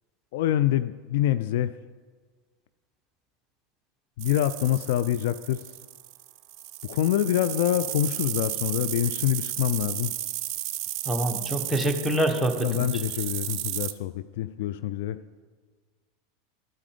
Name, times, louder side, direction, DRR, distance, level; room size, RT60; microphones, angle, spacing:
voice 1, 0.3-1.7 4.2-5.7 6.8-10.1 12.6-15.2, left 12 dB, 60° left, 13 dB, 0.3 m, -26 dB
sound 1, 4.2-13.9, right 13 dB, 50° right, 0.6 m, -34 dB
voice 2, 11.0-12.8, right 1 dB, ahead, 6 dB, 1.4 m, -25 dB
12.5 x 8.4 x 5.0 m, 1.5 s
figure-of-eight pair, 85°, 0 cm